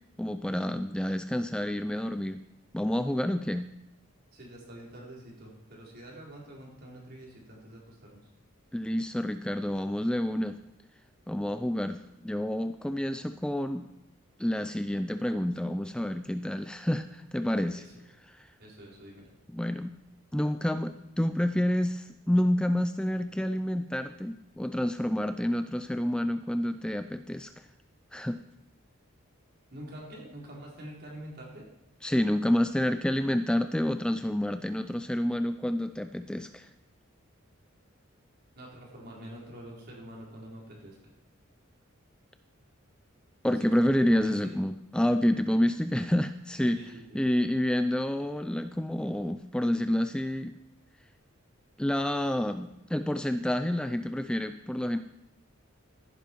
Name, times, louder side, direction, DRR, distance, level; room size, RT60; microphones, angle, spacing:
voice 1, 0.2-2.4 2.7-3.7 8.7-10.6 11.3-13.9 14.4-17.8 18.3-18.5 19.5-19.9 20.3-27.7 28.1-28.4 32.0-36.7 43.4-46.8 47.1-50.5 51.8-55.0, left 1 dB, 5° left, 9 dB, 0.4 m, -28 dB
voice 2, 4.3-8.2 17.8-17.9 18.6-19.2 29.7-31.7 38.5-41.0 43.5-44.5 46.8-47.2, right 1 dB, 50° right, -3 dB, 4.0 m, -46 dB
15.0 x 10.5 x 4.6 m, 0.86 s
head